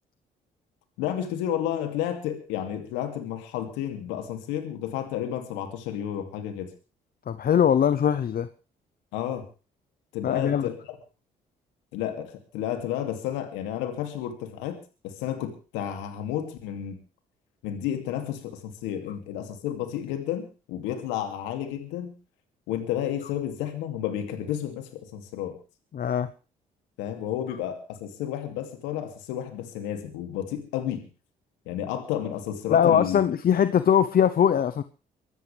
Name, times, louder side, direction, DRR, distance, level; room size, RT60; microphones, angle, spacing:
voice 1, 1.0-6.7 9.1-9.4 10.1-10.8 11.9-14.8 15.0-17.0 17.6-22.1 22.7-25.6 27.0-31.1 31.7-33.2, left 10 dB, 85° left, 6 dB, 2.7 m, -31 dB
voice 2, 7.3-8.5 10.2-10.7 25.9-26.3 32.7-34.8, left 8 dB, 50° left, 12 dB, 0.9 m, -21 dB
24.0 x 13.0 x 3.5 m, 0.34 s
supercardioid pair, 55°, 19 cm